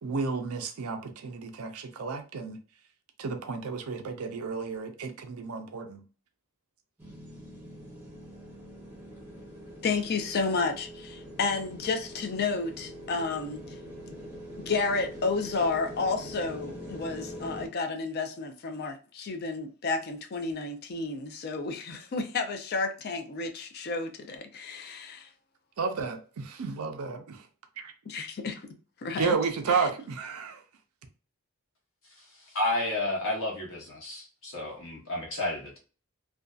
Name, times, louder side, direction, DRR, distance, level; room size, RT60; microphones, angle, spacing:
voice 1, 0.0-2.6 3.2-6.0 25.8-27.5 27.8-27.9 29.2-30.6, right 5 dB, 80° right, 0.5 m, -32 dB
sound 1, 7.0-17.7, equal, 10° right, 0.7 m, -43 dB
voice 2, 9.8-13.6 14.1-14.2 14.7-25.3 28.1-28.6 29.0-29.4, left 4 dB, 45° left, 0.4 m, -31 dB
voice 3, 32.5-35.8, left 2 dB, 65° left, 0.9 m, -31 dB
2.5 x 2.2 x 2.2 m
head